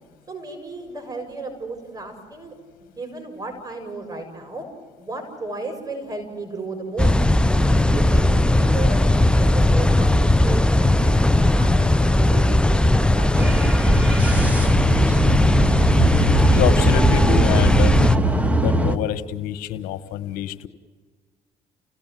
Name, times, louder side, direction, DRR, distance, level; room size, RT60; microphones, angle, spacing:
voice 1, 0.3-2.5 2.9-4.6 5.0-7.1 7.7-13.5, right 3 dB, 25° right, 5 dB, 6.7 m, -34 dB
sound 1, 7.0-18.2, left 1 dB, 5° left, 0.7 m, -18 dB
sound 2, 13.3-19.0, right 1 dB, 10° right, 2.0 m, -21 dB
voice 2, 16.5-17.9 18.6-20.5, left 10 dB, 75° left, 11 dB, 1.6 m, -26 dB
30.0 x 17.5 x 9.4 m, 1.5 s
supercardioid pair, 70°, 15 cm